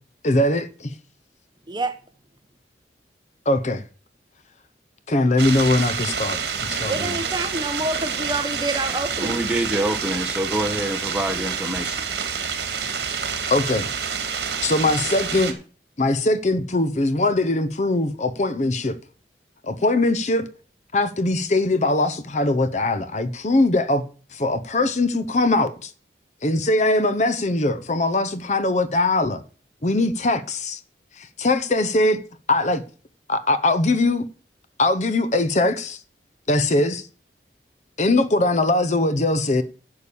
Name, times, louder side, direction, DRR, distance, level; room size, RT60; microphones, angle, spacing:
voice 1, 0.2-0.9 3.5-3.8 5.1-7.2 13.5-13.9 14.6-15.5 16.0-19.0 19.6-20.5 20.9-24.0 24.3-25.9 26.4-29.4 29.8-30.8 31.2-32.2 32.5-32.8 33.3-34.2 34.8-36.0 36.5-37.1 38.0-39.6, left 2 dB, 40° left, 0.8 m, -21 dB
sound 1, 5.4-15.5, right 6 dB, 65° right, 2.2 m, -28 dB
voice 2, 6.8-9.4, right 2 dB, 25° right, 0.8 m, -27 dB
voice 3, 9.2-12.0, right 1 dB, 5° right, 1.3 m, -26 dB
11.0 x 6.8 x 7.0 m
head